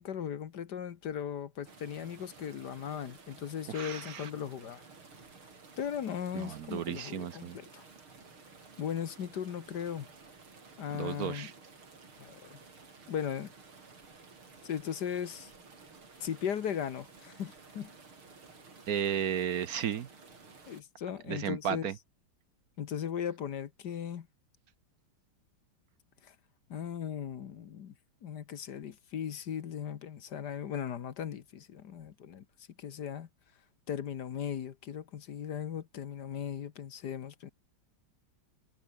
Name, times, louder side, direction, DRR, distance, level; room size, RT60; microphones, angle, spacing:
voice 1, 0.0-4.8 5.8-7.8 8.8-10.1 10.8-11.5 12.2-12.6 13.1-13.5 14.6-15.5 16.2-17.9 20.7-21.9 22.8-24.3 26.2-26.3 26.7-27.9 28.2-32.4 32.8-33.3 33.9-37.5, left 8 dB, 55° left, 1.6 m, -37 dB
sound 1, 1.6-20.8, right 4 dB, 85° right, 5.2 m, -54 dB
voice 2, 3.7-4.3 6.3-7.6 10.9-11.5 18.9-20.1 21.3-21.9, right 9 dB, 55° right, 1.1 m, -34 dB
omnidirectional pair, 2.3 m